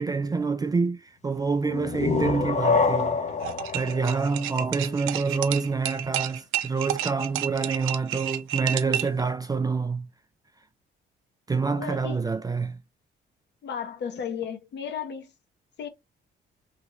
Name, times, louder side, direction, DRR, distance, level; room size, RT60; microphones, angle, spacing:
voice 1, 0.0-3.2 3.7-10.1 11.5-12.8, right 4 dB, 20° right, 0.4 m, -27 dB
sound 1, 1.7-5.2, left 4 dB, 35° left, 0.6 m, -27 dB
sound 2, 3.4-9.2, right 12 dB, 90° right, 0.4 m, -31 dB
voice 2, 11.7-12.2 13.6-15.3 15.8-15.9, left 7 dB, 60° left, 1.0 m, -34 dB
3.0 x 2.6 x 3.0 m
cardioid pair, 90°, 20 cm